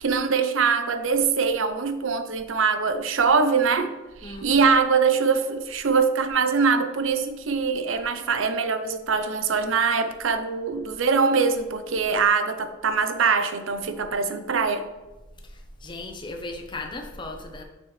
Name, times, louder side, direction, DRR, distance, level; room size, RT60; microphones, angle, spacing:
voice 1, 0.0-3.9 4.2-14.9, right 5 dB, 75° right, 9 dB, 0.6 m, -23 dB
voice 2, 15.4-17.6, left 2 dB, 25° left, 4 dB, 0.7 m, -36 dB
6.7 x 6.1 x 3.2 m, 1.1 s
head